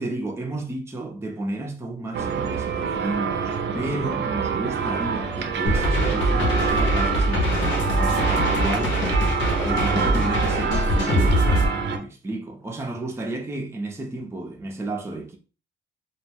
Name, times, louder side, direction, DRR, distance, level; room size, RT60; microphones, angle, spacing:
voice 1, 0.0-9.0 9.6-11.5 11.9-15.4, right 2 dB, 15° right, 0.5 m, -32 dB
sound 1, 2.1-12.0, right 5 dB, 65° right, 0.5 m, -26 dB
sound 2, 5.6-11.7, equal, 70° left, 0.8 m, -23 dB
2.2 x 2.1 x 3.3 m
cardioid pair, 90°, 20 cm